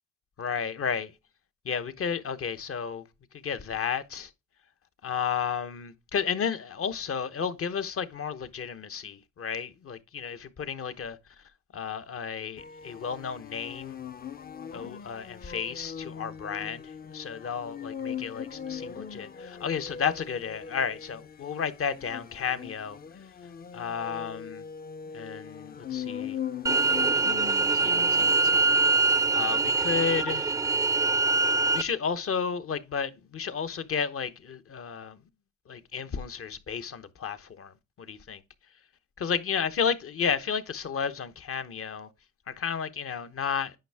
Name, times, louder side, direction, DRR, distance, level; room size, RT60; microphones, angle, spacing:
voice 1, 0.4-1.1 1.6-3.0 3.4-4.3 5.0-11.2 11.7-14.0 14.7-23.2 23.7-24.6 25.1-26.4 27.7-28.7 29.3-30.6 31.7-35.2 35.7-38.4 39.2-42.1 42.5-43.7, left 6 dB, 45° left, 1.0 m, -32 dB
sound 1, 12.6-29.2, left 7 dB, 30° left, 0.6 m, -40 dB
sound 2, 26.7-31.8, right 3 dB, 10° right, 0.4 m, -24 dB
9.1 x 5.8 x 3.5 m
cardioid pair, 90°, 30 cm